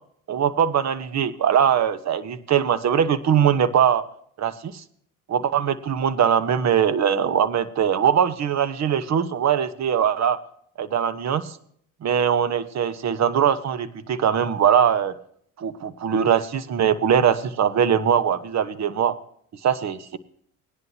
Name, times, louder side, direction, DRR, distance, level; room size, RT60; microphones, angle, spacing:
voice 1, 0.3-4.0 4.4-4.8 5.3-10.4 10.8-11.6 12.0-15.1 15.6-19.2 19.6-20.2, right 8 dB, 45° right, 14 dB, 1.2 m, -21 dB
18.5 x 10.5 x 2.9 m, 0.63 s
supercardioid pair, 75°, 37 cm